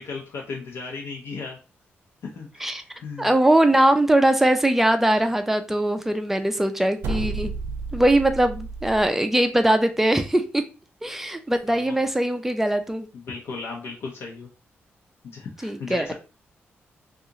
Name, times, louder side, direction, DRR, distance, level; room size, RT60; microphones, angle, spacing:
voice 1, 0.0-1.6 2.2-3.3 11.7-11.9 13.1-14.5 15.2-16.1, left 4 dB, 85° left, 0.7 m, -36 dB
voice 2, 3.2-7.5 7.9-10.6 11.0-13.1 15.6-16.1, right 1 dB, 5° right, 0.4 m, -21 dB
sound 1, 7.0-9.1, right 3 dB, 80° right, 0.6 m, -31 dB
2.8 x 2.4 x 3.6 m
wide cardioid pair, 145°, 4 cm